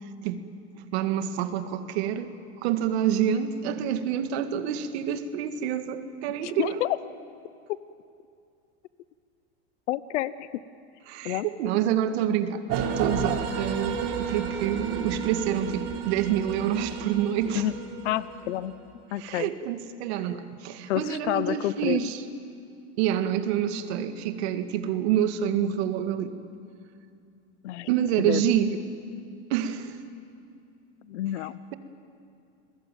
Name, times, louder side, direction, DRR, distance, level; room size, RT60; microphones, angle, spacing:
voice 1, 0.9-2.3 2.6-6.8 11.1-17.7 19.2-22.2 23.0-26.3 27.9-28.8 29.5-30.0, right 9 dB, 70° right, 8 dB, 2.0 m, -27 dB
voice 2, 6.4-7.0 9.9-10.5 11.2-11.5 17.5-17.7 18.0-18.7 19.1-19.5 20.9-22.0 27.6-27.9 28.2-28.4 31.1-31.6, left 14 dB, 90° left, 16 dB, 0.9 m, -28 dB
sound 1, 12.7-18.7, right 6 dB, 45° right, 3.5 m, -32 dB
29.0 x 21.5 x 9.2 m, 2.4 s
supercardioid pair, 140°, 34 cm